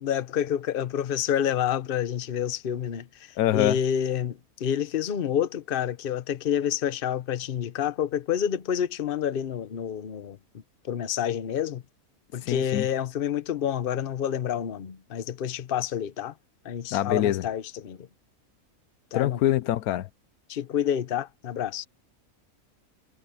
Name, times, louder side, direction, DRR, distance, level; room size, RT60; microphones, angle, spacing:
voice 1, 0.0-10.4 10.8-11.8 12.3-16.3 16.6-18.1 19.1-19.4 20.5-21.9, left 9 dB, 45° left, 0.9 m, -28 dB
voice 2, 3.4-3.8 12.4-12.9 16.9-17.4 19.1-20.1, left 13 dB, 85° left, 1.1 m, -24 dB
omnidirectional pair, 1.6 m